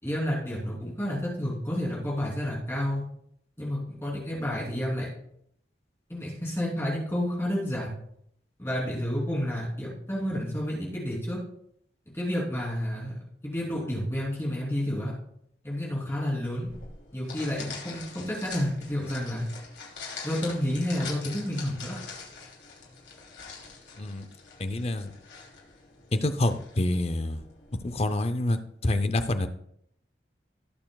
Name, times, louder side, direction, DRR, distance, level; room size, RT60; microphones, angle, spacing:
voice 1, 0.0-3.0 3.6-5.1 6.1-7.9 8.6-11.4 12.1-13.2 13.4-15.1 15.6-16.7 17.1-19.5 20.2-22.0, equal, 15° left, -5 dB, 3.2 m, -30 dB
sound 1, 16.7-28.1, left 5 dB, 85° left, 2.9 m, -44 dB
voice 2, 24.6-25.1 26.1-27.4 27.8-29.5, left 1 dB, 35° left, 10 dB, 0.6 m, -27 dB
17.5 x 6.8 x 2.3 m, 0.72 s
head